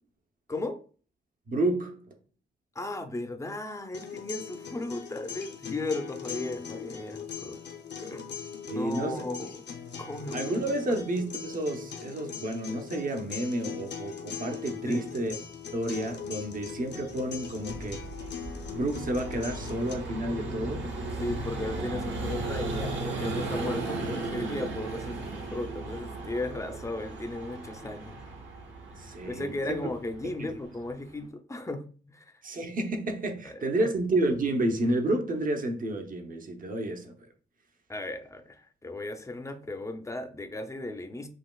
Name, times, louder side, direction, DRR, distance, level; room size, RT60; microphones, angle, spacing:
voice 1, 0.5-0.8 2.8-7.6 8.0-8.3 8.7-9.6 10.0-10.4 10.9-11.0 14.8-15.1 21.2-28.2 29.0-32.4 33.4-33.9 37.9-41.3, left 2 dB, 15° left, 0.6 m, -36 dB
voice 2, 1.5-2.0 8.7-9.3 10.3-15.4 15.7-18.1 18.7-20.9 29.0-29.8 30.4-30.5 32.4-37.3, right 1 dB, 45° right, 0.9 m, -30 dB
sound 1, 3.9-19.9, left 7 dB, 60° left, 0.8 m, -40 dB
Vehicle, 16.5-31.2, right 2 dB, 70° right, 1.3 m, -37 dB
Train, 17.7-23.0, right 2 dB, 90° right, 0.5 m, -43 dB
7.6 x 2.9 x 2.3 m
wide cardioid pair, 125°, 20 cm